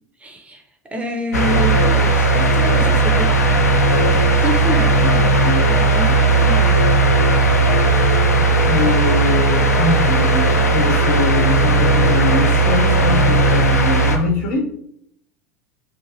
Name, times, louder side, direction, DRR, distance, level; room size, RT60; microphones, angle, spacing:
voice 1, 0.2-0.6 0.9-3.4 4.3-6.9, right 1 dB, 15° right, 3 dB, 0.4 m, -27 dB
sound 1, 1.3-14.2, right 2 dB, 85° left, 0.4 m, -15 dB
Wind instrument woodwind instrument, 7.8-13.0, left 8 dB, 80° right, 1.0 m, -34 dB
voice 2, 8.3-14.7, left 3 dB, 60° left, 0 dB, 0.9 m, -23 dB
2.7 x 2.6 x 2.5 m, 0.69 s
figure-of-eight pair, 75°, 8 cm